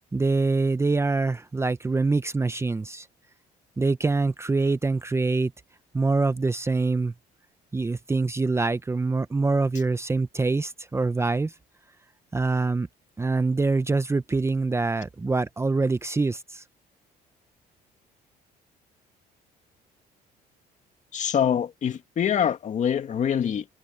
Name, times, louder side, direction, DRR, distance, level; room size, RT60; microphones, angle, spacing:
voice 1, 0.1-3.1 3.8-5.5 5.9-7.1 7.7-11.5 12.3-12.9 13.2-16.6, right 3 dB, 15° right, 0.8 m, -25 dB
voice 2, 21.1-23.7, left 8 dB, 45° left, 2.2 m, -25 dB
cardioid pair, 110°, 17 cm